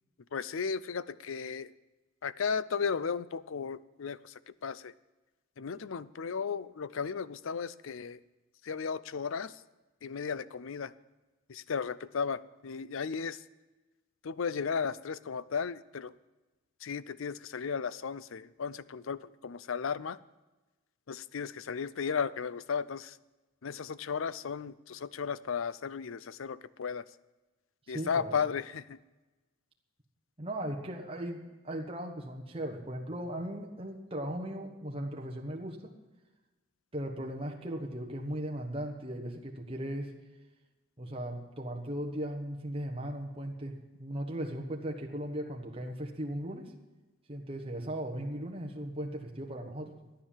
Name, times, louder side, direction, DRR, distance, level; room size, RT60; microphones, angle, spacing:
voice 1, 0.3-1.7 2.2-4.3 4.6-4.9 5.6-8.2 8.6-9.5 10.0-10.9 11.5-13.4 14.2-16.1 16.8-20.2 21.1-23.1 23.6-27.0 27.9-29.0, left 6 dB, 65° left, 18 dB, 0.5 m, -35 dB
voice 2, 27.9-28.4 30.4-35.8 36.9-40.1 41.0-46.7 47.3-49.9, right 1 dB, 25° right, 1 dB, 1.3 m, -37 dB
14.0 x 10.0 x 7.4 m, 1.1 s
head